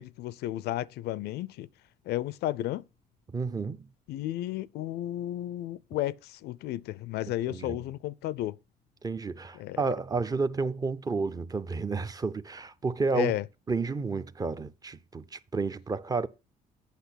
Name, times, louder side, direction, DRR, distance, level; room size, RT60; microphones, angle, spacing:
voice 1, 0.0-1.7 2.1-2.8 4.1-8.6 9.5-9.9 13.1-13.4, left 14 dB, 75° left, 0.4 m, -33 dB
voice 2, 3.3-3.9 7.5-7.8 9.0-13.3 13.7-16.3, right 4 dB, 20° right, 0.5 m, -31 dB
8.2 x 5.9 x 5.8 m
cardioid pair, 110°, 17 cm